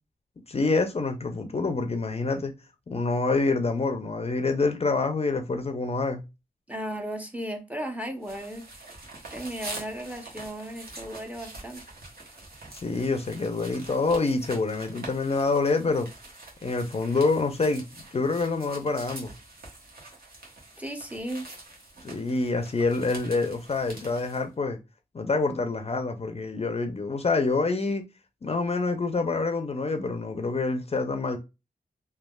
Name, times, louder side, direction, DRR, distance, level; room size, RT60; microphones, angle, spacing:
voice 1, 0.5-2.5 2.9-6.2 12.7-16.1 16.6-17.8 18.1-19.3 22.0-24.8 25.1-28.0 28.4-31.4, left 3 dB, 40° left, 0.5 m, -26 dB
voice 2, 6.7-8.6 9.3-11.8 20.8-21.4, right 1 dB, 10° right, 0.6 m, -35 dB
sound 1, 8.2-24.4, right 2 dB, 70° right, 1.0 m, -45 dB
3.2 x 2.3 x 2.2 m
cardioid pair, 55°, 16 cm